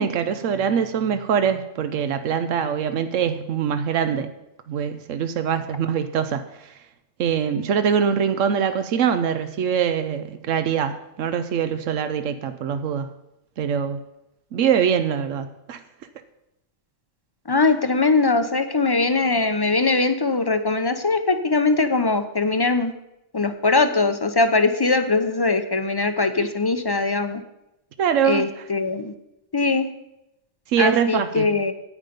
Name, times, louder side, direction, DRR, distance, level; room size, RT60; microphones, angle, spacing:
voice 1, 0.0-4.3 4.7-6.7 7.2-13.1 13.6-14.0 14.5-15.8 26.4-26.5 28.0-28.6 30.7-31.6, right 7 dB, 85° right, 9 dB, 1.1 m, -23 dB
voice 2, 17.5-22.9 23.3-27.4 28.2-29.1 29.5-29.9 30.8-31.7, left 3 dB, 25° left, 9 dB, 0.5 m, -21 dB
9.7 x 9.1 x 5.2 m, 0.88 s
omnidirectional pair, 1.3 m